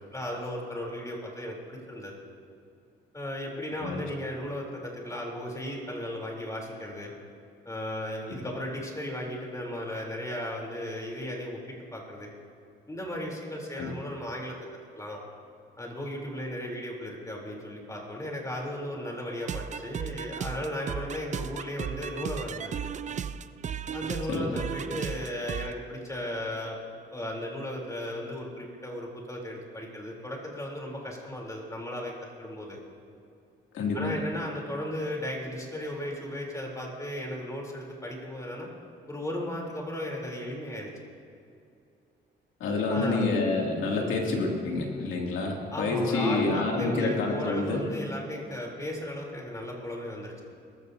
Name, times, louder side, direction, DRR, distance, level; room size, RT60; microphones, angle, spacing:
voice 1, 0.0-2.1 3.1-7.1 7.6-12.3 12.9-14.5 15.0-15.2 15.8-22.8 23.9-26.8 27.1-32.1 32.4-32.8 33.9-38.7 39.1-40.9 42.9-43.3 44.0-44.1 45.7-50.4, left 1 dB, 15° left, -1 dB, 3.4 m, -35 dB
sound 1, 19.4-25.7, right 7 dB, 35° right, 0.4 m, -35 dB
voice 2, 33.7-34.2 42.6-47.9, left 3 dB, 85° left, 0 dB, 2.5 m, -28 dB
21.0 x 14.5 x 2.7 m, 2.5 s
cardioid pair, 90°, 20 cm